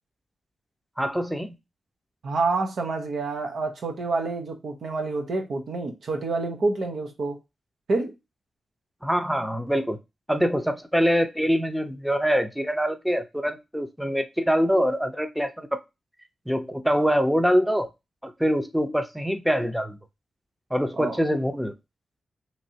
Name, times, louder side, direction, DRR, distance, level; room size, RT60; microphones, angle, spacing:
voice 1, 1.0-1.5 9.0-10.0 10.3-15.7 16.5-17.9 18.2-20.0 20.7-21.7, equal, ahead, 0.6 m, -24 dB
voice 2, 2.2-7.4 7.9-8.1 21.0-21.2, right 3 dB, 75° right, 0.8 m, -28 dB
3.1 x 2.7 x 2.7 m
cardioid pair, 55°, 0 cm